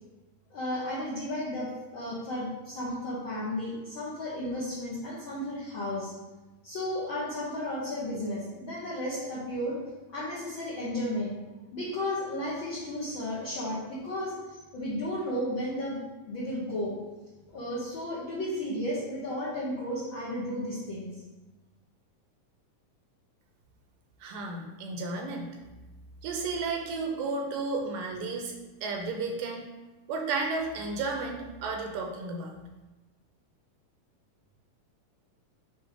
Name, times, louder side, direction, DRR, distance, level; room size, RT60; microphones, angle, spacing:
voice 1, 0.5-6.1 6.6-9.8 10.1-11.3 11.7-14.4 14.7-16.0 16.3-16.9 17.5-21.1, left 1 dB, 70° left, -7 dB, 1.2 m, -33 dB
voice 2, 24.2-25.6 26.2-28.5 28.8-29.7 30.1-32.6, right 3 dB, 80° right, 2 dB, 2.3 m, -33 dB
6.8 x 2.9 x 5.0 m, 1.1 s
omnidirectional pair, 4.0 m